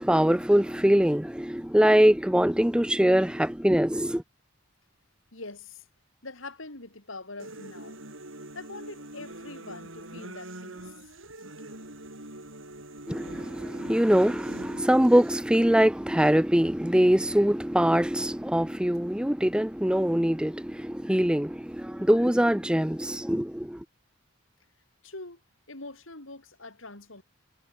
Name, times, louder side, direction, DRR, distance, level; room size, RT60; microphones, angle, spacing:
voice 1, 0.0-4.2 13.1-23.8, equal, 5° right, 0.6 m, -23 dB
voice 2, 5.3-5.8 6.2-8.0 8.5-10.9 25.0-25.4 25.7-27.2, left 2 dB, 70° left, 4.7 m, -43 dB
sound 1, 7.4-15.4, right 1 dB, 70° right, 7.5 m, -44 dB
head